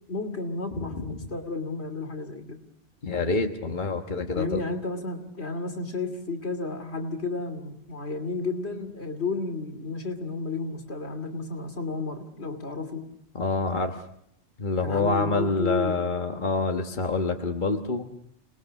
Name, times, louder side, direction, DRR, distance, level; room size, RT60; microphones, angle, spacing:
voice 1, 0.1-2.6 4.3-13.1 14.8-16.0, left 3 dB, 70° left, 6 dB, 2.9 m, -32 dB
voice 2, 0.7-1.2 3.0-4.6 13.3-14.0 14.6-18.1, left 3 dB, 45° left, 4 dB, 1.5 m, -27 dB
29.0 x 20.5 x 6.4 m, 0.72 s
omnidirectional pair, 1.1 m